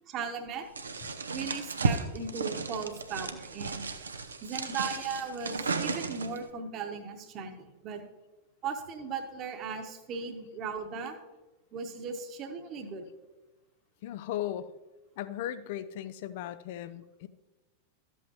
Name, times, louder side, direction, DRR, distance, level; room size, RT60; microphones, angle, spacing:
voice 1, 0.1-0.7 1.3-3.9 4.4-8.0 8.6-11.2 11.7-13.1, right 5 dB, 35° right, 6 dB, 1.2 m, -37 dB
sound 1, 0.8-6.5, right 4 dB, 75° right, 0.6 m, -34 dB
voice 2, 14.0-14.7 15.2-17.3, left 11 dB, 50° left, 14 dB, 0.5 m, -37 dB
13.0 x 8.0 x 2.9 m, 1.1 s
figure-of-eight pair, 90°, 0 cm